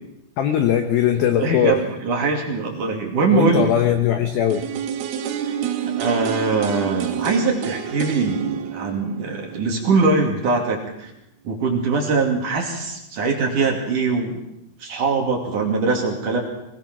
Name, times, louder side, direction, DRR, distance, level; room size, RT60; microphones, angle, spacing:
voice 1, 0.4-1.8 3.3-4.6, left 10 dB, 80° left, 8 dB, 2.2 m, -20 dB
voice 2, 1.4-3.7 5.9-11.1 11.4-14.4 14.8-16.4, right 4 dB, 45° right, 1 dB, 3.4 m, -22 dB
sound 1, 4.5-10.4 10.7-10.8, right 9 dB, 65° right, 2.7 m, -29 dB
22.5 x 19.0 x 6.1 m, 0.85 s
omnidirectional pair, 5.7 m